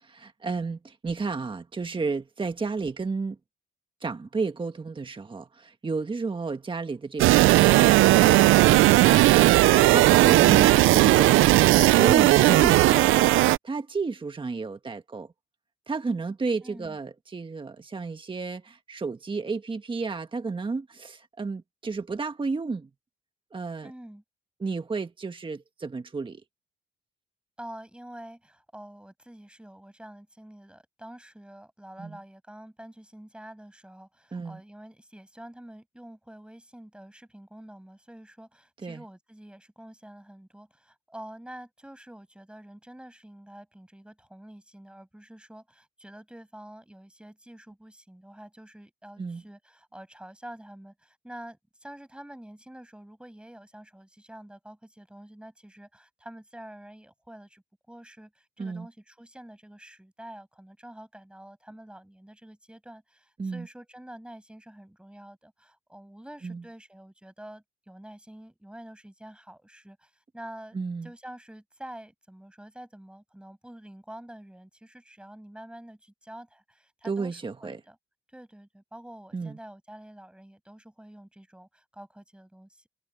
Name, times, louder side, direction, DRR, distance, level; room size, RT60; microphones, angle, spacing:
voice 1, 0.0-3.4 4.0-13.3 13.6-15.3 15.9-22.9 23.5-23.9 24.6-26.4 32.0-32.2 34.3-34.6 38.8-39.0 49.2-49.4 58.6-58.9 63.4-63.7 66.4-66.6 70.7-71.1 77.0-77.8 79.3-79.6, right 4 dB, 25° right, 1.6 m, -32 dB
sound 1, 7.2-13.6, right 17 dB, 85° right, 0.5 m, -17 dB
voice 2, 16.6-17.0 23.8-24.2 27.6-70.8 71.0-78.0 78.3-82.9, right 1 dB, 5° right, 6.4 m, -47 dB
cardioid pair, 90°, 20 cm